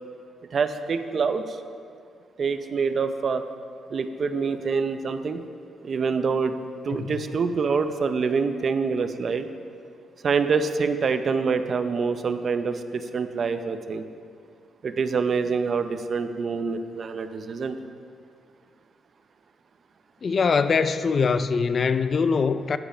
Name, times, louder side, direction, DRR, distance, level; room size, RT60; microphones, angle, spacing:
voice 1, 0.5-1.4 2.4-3.4 3.9-5.4 5.8-6.6 6.8-9.5 10.2-14.1 14.8-17.8, right 5 dB, 45° right, 9 dB, 0.6 m, -26 dB
voice 2, 20.2-22.8, left 5 dB, 40° left, 12 dB, 0.3 m, -23 dB
10.5 x 9.0 x 5.0 m, 2.3 s
cardioid pair, 135°, 0 cm